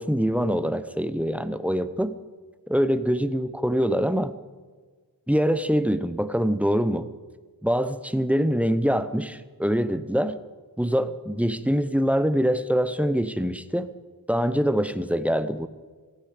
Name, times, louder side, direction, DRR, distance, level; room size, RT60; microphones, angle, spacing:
voice 1, 0.0-2.1 2.7-4.3 5.3-7.1 7.6-10.4 10.8-13.9 14.3-15.7, equal, 5° right, 12 dB, 0.8 m, -24 dB
16.0 x 15.5 x 5.1 m, 1.5 s
wide cardioid pair, 80°, 38 cm